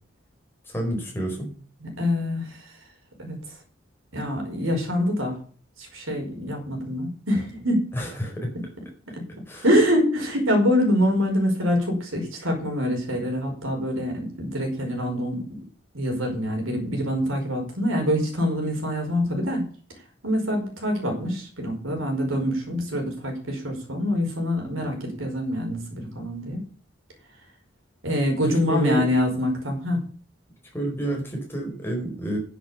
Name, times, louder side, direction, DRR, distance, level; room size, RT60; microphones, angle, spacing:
voice 1, 0.6-1.5 7.9-8.5 9.5-9.6 28.7-29.0 30.7-32.4, right 1 dB, 10° left, 0 dB, 4.4 m, -28 dB
voice 2, 1.8-2.7 3.2-3.6 4.1-5.4 5.8-7.9 9.1-9.2 9.6-15.6 15.9-19.7 20.2-26.6 28.0-30.1, equal, 90° right, 3 dB, 5.1 m, -25 dB
10.0 x 8.3 x 7.0 m, 0.43 s
head